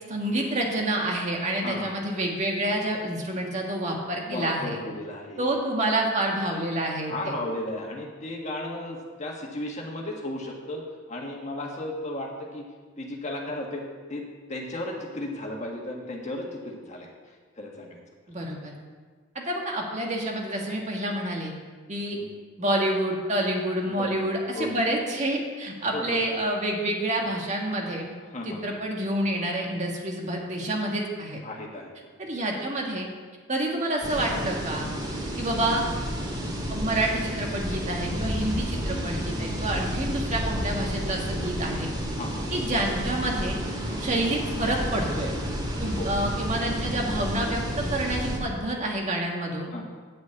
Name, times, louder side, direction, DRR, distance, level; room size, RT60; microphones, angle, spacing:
voice 1, 0.1-4.8 5.4-7.4 18.3-18.7 19.4-21.5 21.9-22.2 22.6-28.1 28.5-31.4 32.2-33.1 33.5-34.9 35.4-35.9 36.7-41.9 42.5-43.6 44.0-45.3 45.8-47.6 47.9-49.7, right 1 dB, 40° right, 0 dB, 1.8 m, -28 dB
voice 2, 1.6-1.9 4.3-5.5 7.1-10.8 11.1-12.7 13.0-13.8 14.1-17.1 17.6-18.0 22.1-22.3 23.9-24.7 25.9-26.2 28.3-28.7 31.4-32.1 35.5-35.6 39.3-39.6 42.2-42.5 45.9-46.1 49.7-49.8, left 1 dB, 40° left, 0 dB, 1.6 m, -35 dB
sound 1, 34.0-48.4, equal, 25° right, 2.1 m, -31 dB
9.2 x 6.3 x 8.4 m, 1.5 s
head